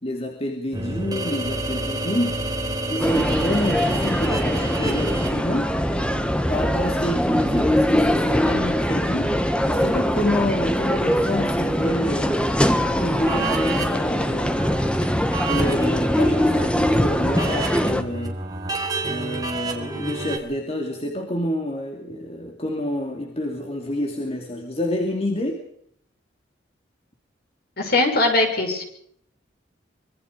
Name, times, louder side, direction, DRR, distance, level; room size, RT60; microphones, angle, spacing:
voice 1, 0.0-2.4 2.9-5.8 6.5-9.4 9.6-12.4 13.0-14.6 15.0-18.4 19.0-25.6, left 1 dB, 35° left, 2 dB, 2.9 m, -28 dB
sound 1, 0.7-20.4, right 2 dB, 20° right, 3.9 m, -31 dB
sound 2, 1.4-8.3, right 1 dB, 55° right, 3.4 m, -37 dB
sound 3, 3.0-18.0, equal, 5° left, 1.4 m, -22 dB
voice 2, 27.8-28.9, left 2 dB, 55° left, 4 dB, 6.3 m, -20 dB
25.5 x 23.0 x 5.1 m, 0.68 s
head